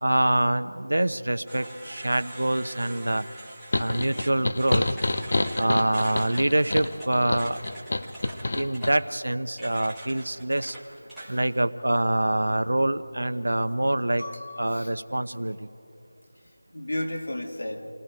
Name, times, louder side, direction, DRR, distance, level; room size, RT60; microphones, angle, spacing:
voice 1, 0.0-3.3 3.8-4.8 5.6-7.6 8.5-10.7 11.3-14.2 14.6-15.7, right 1 dB, 85° right, 12 dB, 0.9 m, -25 dB
sound 1, 1.5-11.6, right 1 dB, ahead, 1.8 m, -43 dB
sound 2, 3.7-9.0, left 2 dB, 45° left, 0.8 m, -28 dB
voice 2, 14.2-14.9 16.7-17.9, left 1 dB, 70° left, 3 dB, 2.6 m, -34 dB
28.0 x 19.0 x 5.2 m, 2.8 s
figure-of-eight pair, 175°, 0 cm